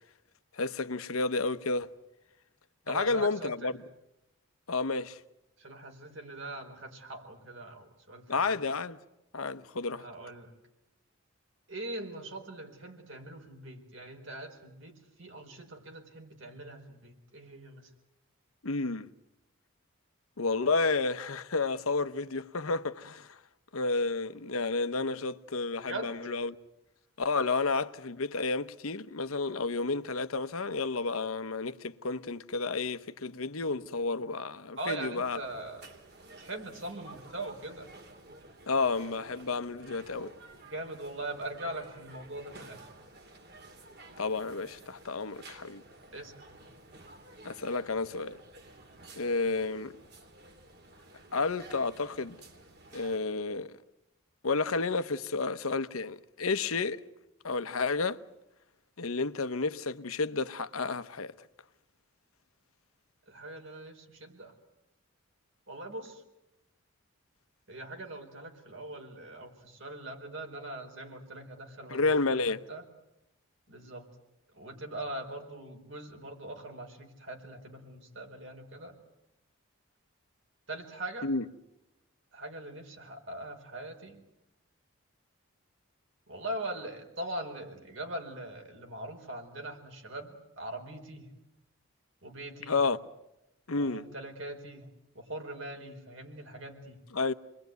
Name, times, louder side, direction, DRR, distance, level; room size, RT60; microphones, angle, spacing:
voice 1, 0.5-1.9 2.9-3.7 4.7-5.2 8.3-9.0 9.3-10.0 18.6-19.1 20.4-23.4 23.7-26.6 27.2-35.4 38.7-40.3 44.2-45.8 47.4-48.4 49.2-49.9 51.3-52.4 52.9-53.8 54.4-57.0 57.4-58.2 59.0-61.3 71.9-72.6 81.2-81.4 92.7-93.0 93.7-94.0 97.1-97.3, left 3 dB, 90° left, 1.0 m, -31 dB
voice 2, 2.9-3.8 5.6-8.4 9.9-10.5 11.7-17.9 25.9-26.2 34.8-35.8 36.4-37.9 40.6-42.9 46.1-46.3 63.3-64.5 65.7-66.2 67.7-72.8 73.7-74.1 74.5-78.9 80.7-81.3 82.3-84.2 86.3-91.3 92.2-92.8 93.7-94.9 95.1-97.0, right 1 dB, 65° right, 4.4 m, -41 dB
sound 1, 35.2-53.2, right 2 dB, 50° right, 2.9 m, -52 dB
28.5 x 21.5 x 9.3 m
head